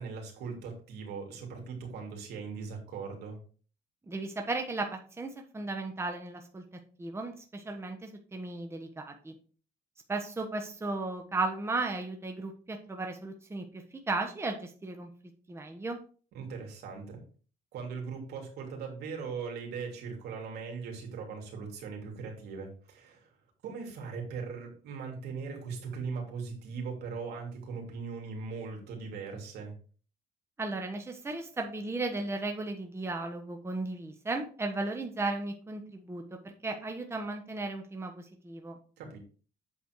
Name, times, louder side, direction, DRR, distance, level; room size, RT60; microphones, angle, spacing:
voice 1, 0.0-3.4 16.3-17.2 17.7-23.3 23.6-29.7 39.0-39.2, right 5 dB, 75° right, 1 dB, 3.0 m, -39 dB
voice 2, 4.1-6.6 7.0-9.3 10.1-15.1 15.5-16.0 30.6-38.8, right 3 dB, 15° right, 3 dB, 1.2 m, -35 dB
8.4 x 4.3 x 4.6 m, 0.39 s
cardioid pair, 110°, 17 cm